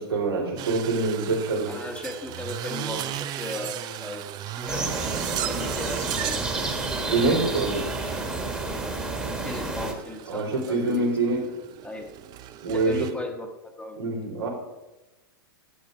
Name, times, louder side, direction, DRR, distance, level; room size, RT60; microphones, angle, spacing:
voice 1, 0.0-1.7 7.1-7.8 10.3-11.5 12.6-13.1 14.0-14.5, right 3 dB, 85° right, 0 dB, 3.4 m, -25 dB
sound 1, 0.6-13.1, right 12 dB, 35° right, 0.6 m, -36 dB
voice 2, 1.6-4.2 4.6-4.9 5.4-6.5 7.3-7.8 9.4-11.1 11.4-11.5 11.8-12.1 12.7-14.0, left 2 dB, 10° left, 3 dB, 1.3 m, -37 dB
sound 2, 4.7-9.9, right 2 dB, 5° right, 1.6 m, -30 dB
11.0 x 8.0 x 5.0 m, 1.0 s
hypercardioid pair, 120°, 13 cm